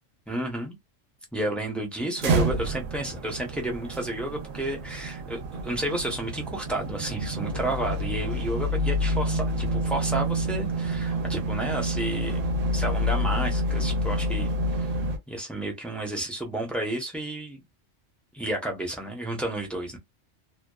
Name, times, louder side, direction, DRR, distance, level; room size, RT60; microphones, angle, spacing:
voice 1, 0.3-0.8 1.3-12.4 12.7-14.9 15.3-17.6 18.3-20.0, right 1 dB, ahead, 0.6 m, -31 dB
sound 1, 2.2-15.2, equal, 80° right, 1.0 m, -28 dB
2.7 x 2.2 x 2.2 m
omnidirectional pair, 1.3 m